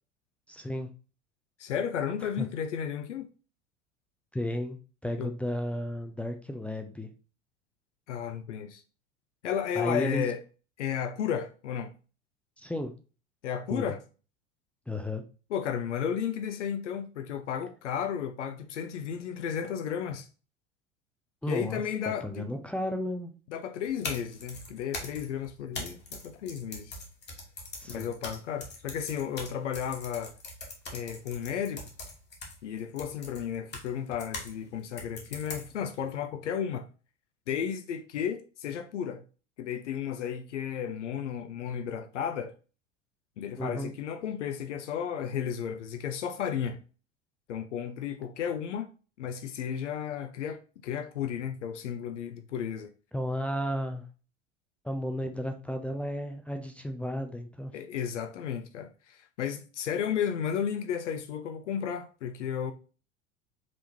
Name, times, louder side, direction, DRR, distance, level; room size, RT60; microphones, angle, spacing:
voice 1, 0.5-0.9 2.4-2.5 4.3-4.8 5.0-7.1 9.8-10.3 12.6-12.9 13.7-13.9 14.9-15.2 21.4-23.3 27.8-28.1 43.6-43.9 53.1-54.0 54.8-57.7, left 1 dB, 5° left, 0.4 m, -33 dB
voice 2, 1.6-3.3 5.2-5.3 8.1-8.8 9.4-10.4 10.8-11.9 13.4-14.0 15.5-20.3 21.5-22.4 23.5-27.0 27.9-30.3 30.9-31.8 32.6-36.9 37.5-39.2 39.6-42.5 43.4-46.8 47.5-48.9 49.2-52.9 57.7-62.7, left 8 dB, 70° left, 0.6 m, -33 dB
sound 1, 23.8-34.5 35.0-35.9, left 2 dB, 25° left, 1.4 m, -42 dB
5.1 x 3.5 x 2.8 m
figure-of-eight pair, 75°, 37 cm